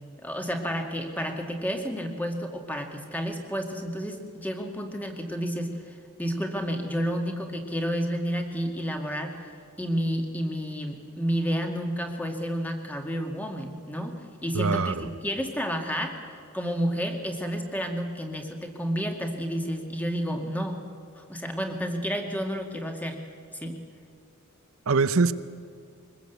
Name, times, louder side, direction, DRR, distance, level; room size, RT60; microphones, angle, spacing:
voice 1, 0.2-9.4 9.8-16.2 16.5-20.8 21.2-23.2 23.5-23.8, equal, 10° left, 2.0 m, -30 dB
voice 2, 14.5-15.1 24.9-25.3, right 4 dB, 65° right, 0.7 m, -23 dB
23.0 x 20.5 x 8.1 m
head